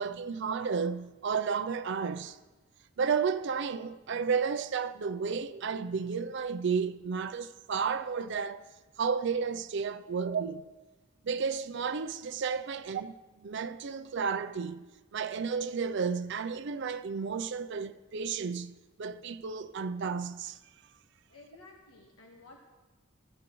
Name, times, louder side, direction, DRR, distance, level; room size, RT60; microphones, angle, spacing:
voice 1, 0.0-2.4 3.0-8.6 9.0-10.6 11.2-13.1 13.4-14.8 15.1-20.6, right 5 dB, 60° right, 0.5 m, -32 dB
voice 2, 21.3-22.6, left 3 dB, 85° left, 1.4 m, -53 dB
16.5 x 13.5 x 3.1 m
head